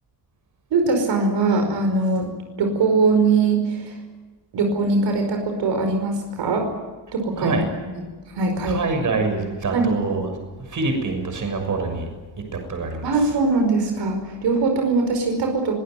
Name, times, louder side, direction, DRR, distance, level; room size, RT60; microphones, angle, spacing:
voice 1, 0.7-2.3 2.6-4.0 4.5-6.7 7.1-8.0 8.4-8.9 9.7-9.9 13.0-15.7, right 3 dB, 85° right, 4 dB, 5.3 m, -21 dB
voice 2, 8.6-10.4 10.7-12.1 12.5-13.1, right 3 dB, 45° right, 5 dB, 6.5 m, -25 dB
24.0 x 19.0 x 9.3 m, 1.3 s
wide cardioid pair, 150°, 41 cm